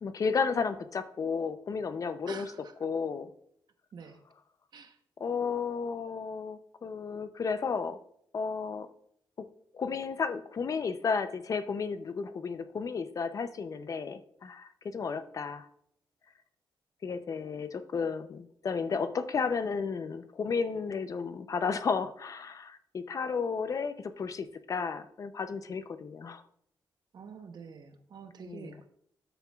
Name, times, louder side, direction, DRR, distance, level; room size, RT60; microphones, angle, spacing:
voice 1, 0.0-2.5 2.8-3.3 5.2-8.0 8.3-8.9 9.4-9.5 9.7-15.7 17.0-26.4 28.5-28.9, left 5 dB, 40° left, 11 dB, 0.5 m, -33 dB
voice 2, 2.3-2.8 3.9-4.2 4.7-5.0 27.1-28.9, right 6 dB, 55° right, 7 dB, 0.9 m, -47 dB
12.0 x 6.7 x 2.3 m, 0.67 s
wide cardioid pair, 170°, 8 cm